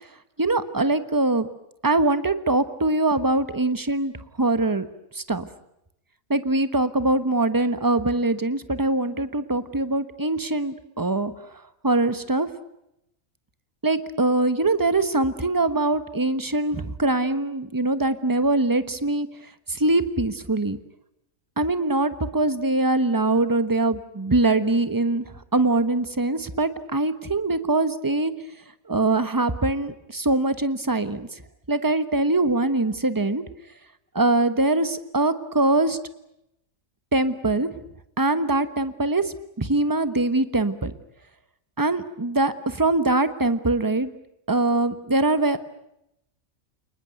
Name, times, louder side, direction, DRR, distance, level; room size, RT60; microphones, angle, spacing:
voice 1, 0.4-1.5 1.8-4.1 4.4-4.9 5.1-5.5 6.3-11.3 11.8-12.5 13.8-19.3 19.7-20.8 21.6-25.2 25.5-28.3 28.9-31.3 31.7-33.4 34.1-36.0 37.1-37.7 38.2-40.9 41.8-44.1 44.5-45.6, right 2 dB, 15° right, 12 dB, 1.1 m, -23 dB
29.5 x 20.0 x 9.2 m, 0.83 s
omnidirectional pair, 1.4 m